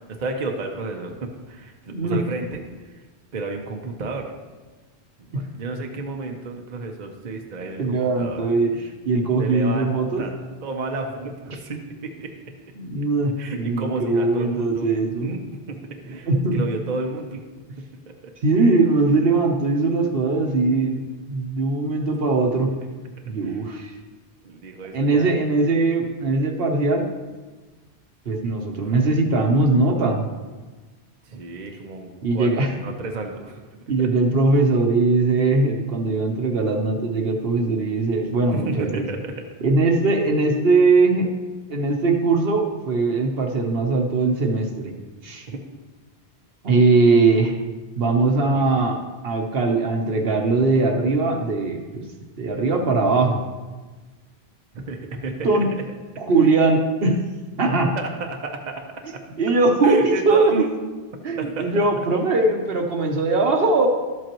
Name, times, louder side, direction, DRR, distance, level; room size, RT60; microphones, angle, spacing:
voice 1, 0.1-3.0 3.3-4.3 5.3-8.4 9.4-10.3 10.6-12.3 13.4-14.9 15.2-15.4 15.7-17.4 17.8-18.3 23.3-23.7 24.4-25.4 28.8-29.0 31.2-33.6 34.0-34.1 38.5-39.4 45.5-45.6 48.5-48.7 54.9-55.5 56.4-56.5 58.0-59.2 59.8-60.7 61.4-61.8, right 3 dB, 45° right, 2 dB, 0.8 m, -32 dB
voice 2, 7.8-10.2 12.8-15.3 16.1-16.6 18.4-22.7 23.3-23.9 24.9-27.1 28.3-30.3 32.2-32.7 33.9-39.0 39.6-41.3 41.7-44.9 45.2-45.5 46.6-47.5 48.0-49.0 49.2-52.0 52.4-53.4 55.4-55.7 56.2-57.2 57.6-57.9 59.4-60.5 61.2-63.9, right 3 dB, 60° right, 2 dB, 1.1 m, -20 dB
12.5 x 7.8 x 3.0 m, 1.3 s
omnidirectional pair, 1.1 m